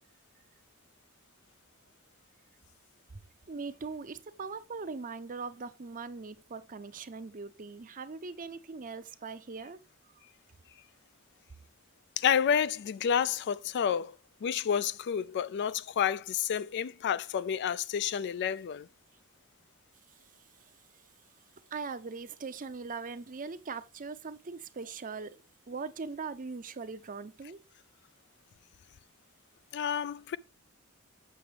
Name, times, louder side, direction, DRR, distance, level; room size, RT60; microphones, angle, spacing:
voice 1, 3.5-9.8 21.7-25.4 25.7-27.6, right 4 dB, 40° right, 0.6 m, -40 dB
voice 2, 12.2-14.1 14.4-18.9 29.7-30.4, left 8 dB, 55° left, 0.3 m, -29 dB
7.6 x 5.9 x 3.3 m
head